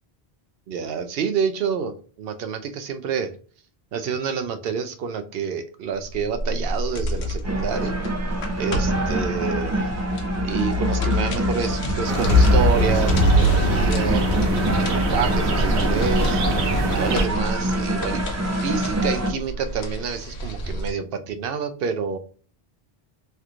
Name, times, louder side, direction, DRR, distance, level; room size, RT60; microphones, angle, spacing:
voice 1, 0.7-3.3 3.9-8.0 8.6-9.9 10.4-14.6 14.9-16.4 16.9-18.2 18.6-22.2, right 6 dB, 70° right, 8 dB, 0.7 m, -28 dB
sound 1, 6.1-20.9, left 1 dB, 85° left, 1.0 m, -25 dB
sound 2, 7.4-19.3, right 1 dB, 20° right, 0.4 m, -26 dB
sound 3, 12.1-17.3, right 2 dB, 90° right, 1.0 m, -25 dB
3.3 x 3.0 x 2.4 m, 0.41 s
omnidirectional pair, 1.1 m